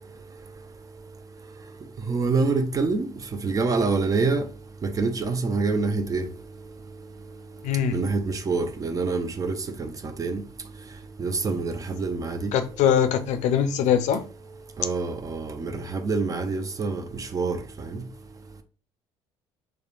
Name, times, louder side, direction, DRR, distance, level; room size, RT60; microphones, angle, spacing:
voice 1, 2.1-3.1 3.4-4.4 4.8-6.2 7.9-9.9 10.2-10.4 11.2-11.7 12.0-12.5 14.8-17.0 17.3-17.6, right 4 dB, 25° right, 0.4 m, -25 dB
voice 2, 7.6-8.0 12.5-14.2, left 8 dB, 65° left, 0.4 m, -22 dB
2.8 x 2.1 x 2.4 m
supercardioid pair, 85°, 13 cm